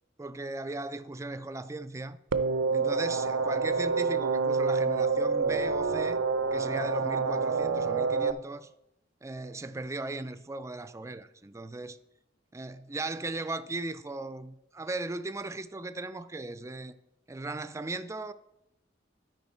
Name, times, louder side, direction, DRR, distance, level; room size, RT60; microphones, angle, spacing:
voice 1, 0.2-2.2 2.7-6.2 6.5-8.7 9.2-12.0 12.5-17.0 17.3-18.3, right 2 dB, 15° right, 0.4 m, -37 dB
sound 1, 2.3-8.3, right 4 dB, 80° right, 0.5 m, -27 dB
12.5 x 5.0 x 4.3 m
head